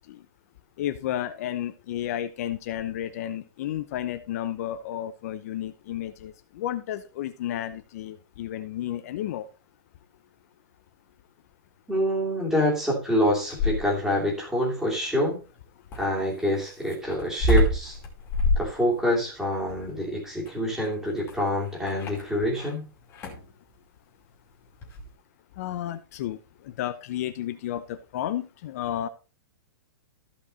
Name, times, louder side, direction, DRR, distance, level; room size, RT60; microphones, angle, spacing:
voice 1, 0.8-9.5 25.6-29.1, left 11 dB, 45° left, 11 dB, 0.7 m, -32 dB
voice 2, 11.9-15.4 15.9-18.0 18.6-22.8, equal, 5° right, -3 dB, 2.9 m, -26 dB
sound 1, 13.2-14.1 15.9-22.8 23.1-23.5 24.8-25.1, left 1 dB, 20° left, 2.5 m, -28 dB
14.5 x 5.4 x 4.0 m, 0.32 s
supercardioid pair, 170°, 12 cm